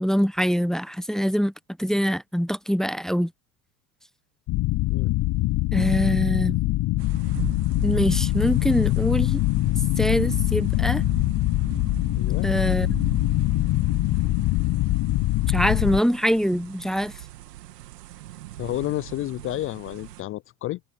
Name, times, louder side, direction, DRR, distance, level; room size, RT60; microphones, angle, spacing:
voice 1, 0.0-1.5 1.8-3.3 5.7-6.6 7.8-9.4 10.0-11.0 12.4-12.9 15.5-17.1, equal, ahead, 1.1 m, -24 dB
sound 1, 4.5-16.0, left 19 dB, 45° left, 1.1 m, -23 dB
sound 2, 7.0-20.2, right 14 dB, 80° right, 2.4 m, -40 dB
voice 2, 12.1-12.5 18.6-20.8, left 15 dB, 30° left, 0.4 m, -30 dB
hypercardioid pair, 75°, 47 cm